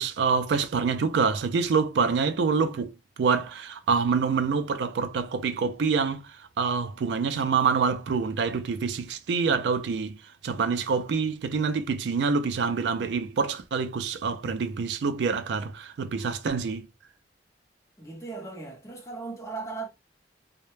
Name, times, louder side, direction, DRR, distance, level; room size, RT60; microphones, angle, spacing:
voice 1, 0.0-16.9, right 5 dB, 75° right, 0.4 m, -26 dB
voice 2, 18.0-19.9, right 4 dB, 20° left, 0.7 m, -37 dB
2.1 x 2.0 x 3.0 m
head